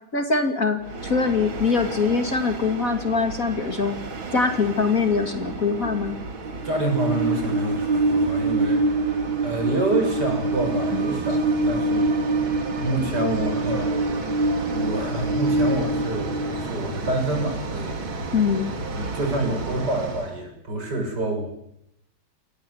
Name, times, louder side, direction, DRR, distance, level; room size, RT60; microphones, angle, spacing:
voice 1, 0.1-4.0 4.3-6.2 10.9-11.1 18.3-18.7, left 4 dB, 40° left, 6 dB, 2.7 m, -23 dB
Train, 0.9-20.3, right 2 dB, 70° right, 3.6 m, -26 dB
voice 2, 6.6-12.1 12.8-14.0 14.7-18.3 18.9-21.5, right 1 dB, 50° right, 4 dB, 7.1 m, -28 dB
27.0 x 19.0 x 8.0 m, 0.79 s
omnidirectional pair, 2.3 m